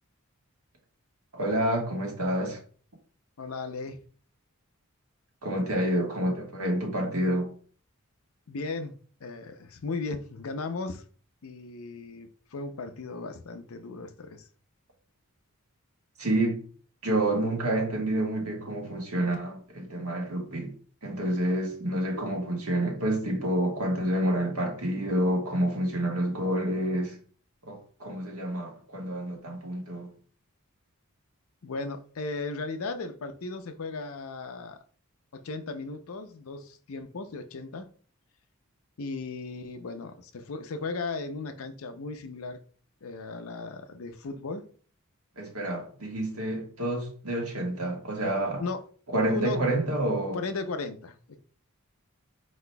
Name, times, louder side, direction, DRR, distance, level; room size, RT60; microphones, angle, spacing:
voice 1, 1.3-2.6 5.4-7.5 16.2-16.6 17.0-20.7 21.0-27.1 27.6-30.1 45.4-48.6 49.1-50.4, right 1 dB, 80° right, 1.4 m, -28 dB
voice 2, 3.4-4.0 8.5-9.0 9.2-11.0 11.4-14.5 31.6-34.8 35.3-37.9 39.0-42.6 43.0-44.7 48.6-48.8 49.3-49.6 50.3-51.4, left 3 dB, 70° left, 0.5 m, -36 dB
4.7 x 4.2 x 2.2 m
head